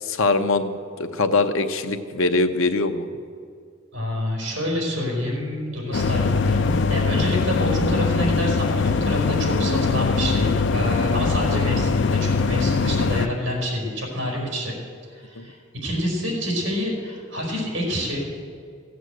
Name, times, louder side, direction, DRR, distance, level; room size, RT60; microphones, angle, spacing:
voice 1, 0.0-3.1 15.4-15.5, left 3 dB, 75° left, 8 dB, 0.9 m, -22 dB
voice 2, 3.9-14.7 15.1-18.2, equal, 65° right, -2 dB, 4.5 m, -27 dB
sound 1, 5.9-13.3, left 4 dB, 55° left, 0.4 m, -22 dB
15.5 x 8.0 x 8.0 m, 2.2 s
head